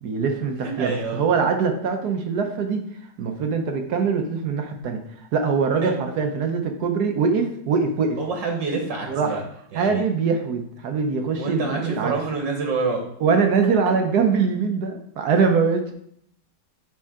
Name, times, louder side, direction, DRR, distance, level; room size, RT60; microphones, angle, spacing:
voice 1, 0.0-2.8 3.2-5.0 5.3-8.2 9.1-9.3 9.7-12.1 13.2-15.9, right 5 dB, 65° right, 5 dB, 1.3 m, -22 dB
voice 2, 0.6-1.2 5.8-6.0 8.2-9.4 9.7-10.0 11.4-13.1, right 4 dB, 80° right, 2 dB, 1.8 m, -27 dB
9.1 x 4.5 x 3.6 m, 0.69 s
omnidirectional pair, 1.9 m